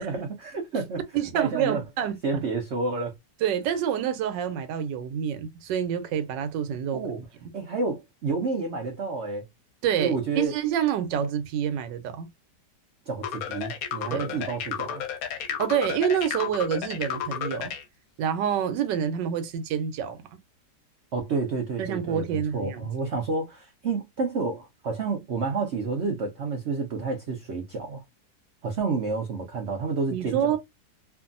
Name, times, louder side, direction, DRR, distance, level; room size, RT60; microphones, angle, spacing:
voice 1, 0.0-1.0 1.3-1.8 2.2-3.1 6.9-7.2 7.5-9.5 10.0-10.5 13.1-15.0 21.1-28.0 28.6-30.6, right 4 dB, 70° right, 0.6 m, -29 dB
voice 2, 1.1-2.2 3.4-7.0 7.4-7.5 9.8-12.3 14.1-14.3 15.6-17.7 18.2-20.4 21.8-22.9 30.1-30.6, right 9 dB, 90° right, 1.3 m, -27 dB
sound 1, 13.2-17.8, left 8 dB, 65° left, 0.9 m, -32 dB
2.6 x 2.6 x 2.5 m
omnidirectional pair, 1.9 m